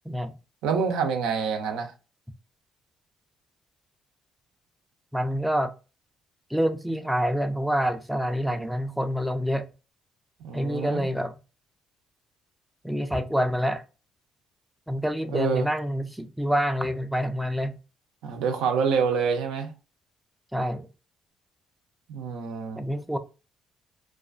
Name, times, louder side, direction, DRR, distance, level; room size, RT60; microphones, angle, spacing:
voice 1, 0.6-1.9 10.4-11.1 15.3-15.7 18.2-19.7 22.1-22.8, right 6 dB, 85° right, 0.5 m, -26 dB
voice 2, 5.1-5.7 6.5-9.7 10.5-11.3 12.8-13.8 14.9-17.8 20.5-20.9 22.8-23.2, equal, 5° right, 0.4 m, -27 dB
2.3 x 2.3 x 2.3 m
supercardioid pair, 65°, 0 cm